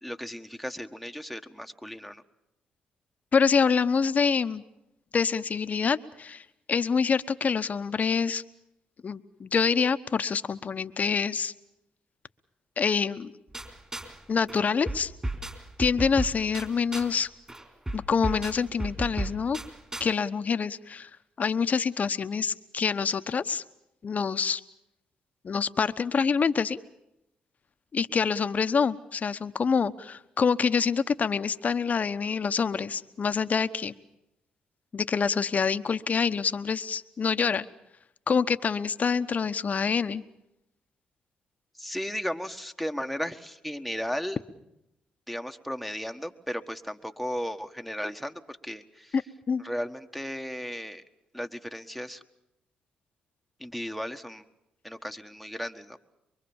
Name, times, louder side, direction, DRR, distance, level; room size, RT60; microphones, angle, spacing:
voice 1, 0.0-2.2 41.7-44.4 45.3-49.2 49.6-51.0 51.3-52.2 53.6-54.4 54.8-56.0, equal, ahead, 8 dB, 1.5 m, -35 dB
voice 2, 3.3-4.6 5.1-8.4 9.0-11.5 12.8-13.3 14.3-15.1 15.8-17.3 17.9-19.6 20.0-21.1 21.4-23.6 24.0-24.6 25.4-26.8 27.9-33.9 34.9-37.7 38.3-40.2 49.1-49.2 49.5-49.6, left 6 dB, 45° left, 12 dB, 1.0 m, -26 dB
sound 1, 13.5-14.2 14.5-17.2 17.5-20.1, right 1 dB, 20° right, 3.9 m, -35 dB
24.0 x 23.5 x 7.2 m, 0.85 s
supercardioid pair, 60°, 4 cm